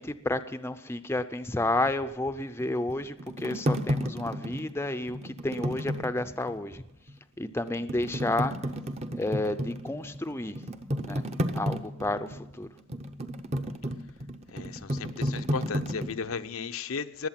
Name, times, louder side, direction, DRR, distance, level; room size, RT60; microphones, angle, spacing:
voice 1, 0.0-6.8 7.4-8.5 9.1-10.6 11.0-11.2 11.5-12.7, left 2 dB, 10° left, 9 dB, 0.5 m, -31 dB
sound 1, 2.6-6.6 7.1-7.2 7.7-16.1, equal, 30° right, 0.8 m, -33 dB
voice 2, 14.5-17.3, left 5 dB, 75° left, 9 dB, 0.6 m, -35 dB
20.0 x 8.0 x 5.8 m, 0.94 s
head